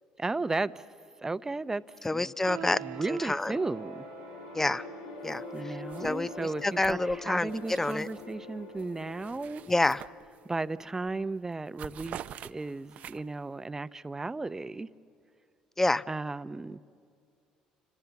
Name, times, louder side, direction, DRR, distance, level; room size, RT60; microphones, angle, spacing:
voice 1, 0.2-0.8 1.2-1.8 2.1-2.3 2.8-4.0 5.5-9.6 10.4-12.2 12.4-14.9 16.1-16.8, right 3 dB, 20° right, 0.8 m, -34 dB
sound 1, 1.8-11.0, left 5 dB, 90° left, 2.1 m, -46 dB
voice 2, 2.0-2.8 3.1-3.5 4.5-4.9 5.2-5.7 6.0-8.1 9.7-10.0 15.8-16.0, left 2 dB, 15° left, 0.6 m, -28 dB
sound 2, 2.5-13.0, right 12 dB, 80° right, 1.4 m, -48 dB
sound 3, 5.3-5.6 5.9-8.3 8.7-10.6 11.0-11.2 11.5-13.5, right 10 dB, 60° right, 0.6 m, -47 dB
29.0 x 25.5 x 7.1 m
supercardioid pair, 75°, 3 cm